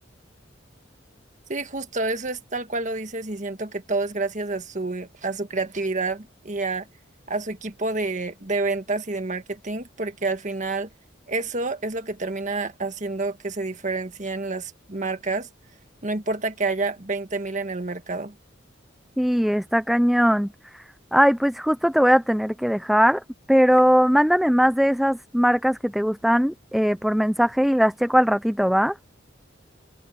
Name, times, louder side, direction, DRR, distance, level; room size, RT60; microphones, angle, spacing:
voice 1, 1.5-6.9 7.3-10.9 11.3-15.5 16.0-18.3, right 3 dB, 40° right, 1.7 m, -28 dB
voice 2, 19.2-20.8 21.1-23.2 23.5-28.9, equal, ahead, 0.6 m, -20 dB
open air
head